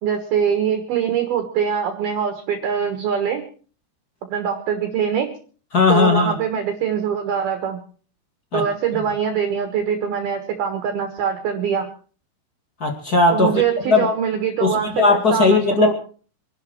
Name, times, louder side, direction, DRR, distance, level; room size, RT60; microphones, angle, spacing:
voice 1, 0.0-3.4 4.3-5.3 5.9-7.8 8.5-11.9 13.3-15.9, right 7 dB, 65° right, 6 dB, 3.0 m, -23 dB
voice 2, 5.7-6.3 8.5-8.6 12.8-14.1 14.6-15.9, left 3 dB, 50° left, 4 dB, 1.1 m, -17 dB
25.0 x 11.5 x 4.5 m, 0.41 s
omnidirectional pair, 5.5 m